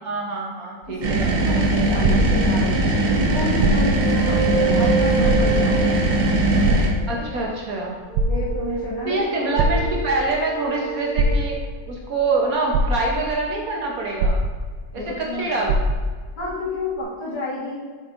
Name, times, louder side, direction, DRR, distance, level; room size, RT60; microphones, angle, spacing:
voice 1, 0.0-1.2 7.1-8.0 9.0-11.6 11.9-14.4 14.9-15.8, right 3 dB, 55° right, -2 dB, 1.2 m, -25 dB
sound 1, 0.8-2.9 3.5-4.2 4.6-4.7 5.2-5.9 6.6-7.5 8.0-8.8 9.6-10.3 11.2-11.9 12.4-12.5 12.7-13.4 14.2-15.0 15.3-15.4 15.7-16.3 17.0-17.1, right 2 dB, 90° right, 1.4 m, -23 dB
voice 2, 0.9-2.9 3.3-5.9 7.1-7.5 8.3-9.4 14.9-15.6 16.4-17.8, left 2 dB, 90° left, -10 dB, 2.7 m, -30 dB
sound 2, 1.0-6.9, right 2 dB, 75° right, 1.7 m, -20 dB
sound 3, 2.8-7.3 8.1-11.6, right 4 dB, 75° left, 1.8 m, -29 dB
7.2 x 5.5 x 2.5 m, 1.5 s
omnidirectional pair, 2.1 m